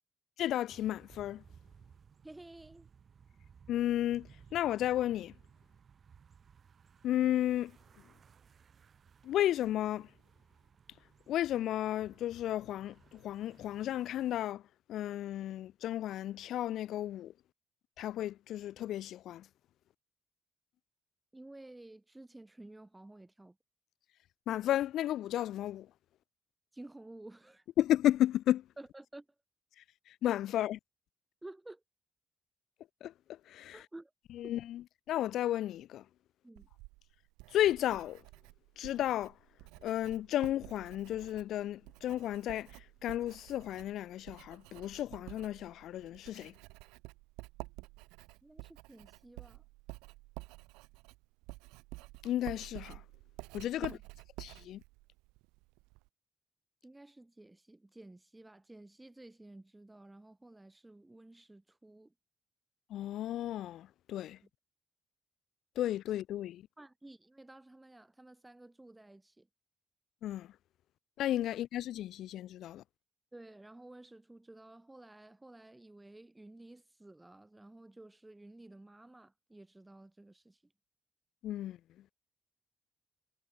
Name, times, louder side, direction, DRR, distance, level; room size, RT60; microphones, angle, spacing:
voice 1, 0.4-1.4 3.7-4.3 4.5-5.3 7.0-7.7 9.3-10.1 11.3-12.9 13.2-14.6 14.9-17.3 18.0-19.4 24.5-25.9 27.8-28.6 30.2-30.8 33.0-33.1 33.5-33.8 34.4-34.8 35.1-36.0 37.5-38.2 38.8-39.3 39.8-42.7 43.0-46.5 52.2-53.0 53.5-53.9 54.4-54.8 62.9-64.4 65.8-66.6 70.2-70.5 71.2-72.8 81.4-81.8, left 12 dB, 75° left, 0.4 m, -33 dB
sound 1, 0.7-14.5, right 7 dB, 50° right, 4.8 m, -60 dB
voice 2, 2.2-2.9 21.3-23.6 26.7-27.6 28.8-29.3 31.4-31.8 33.7-34.1 36.4-36.7 48.4-49.6 53.8-54.0 56.8-62.1 64.4-64.5 66.8-69.5 73.3-80.6, right 2 dB, 15° right, 7.7 m, -53 dB
Writing, 36.6-56.1, right 24 dB, 90° right, 1.7 m, -51 dB
supercardioid pair, 60°, 0 cm